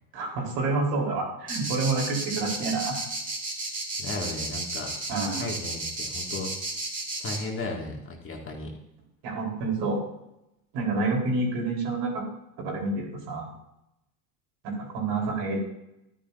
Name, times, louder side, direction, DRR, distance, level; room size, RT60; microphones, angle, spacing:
voice 1, 0.1-3.0 5.1-5.5 9.2-10.0 10.7-12.3 12.6-13.5 14.6-15.6, right 3 dB, 60° right, -1 dB, 4.5 m, -28 dB
sound 1, 1.5-7.4, right 2 dB, 15° right, 3.0 m, -32 dB
voice 2, 4.0-4.9 5.4-6.5 7.2-8.7, left 2 dB, 25° left, 0 dB, 2.4 m, -35 dB
12.5 x 10.5 x 2.8 m, 0.86 s
hypercardioid pair, 90°, 46 cm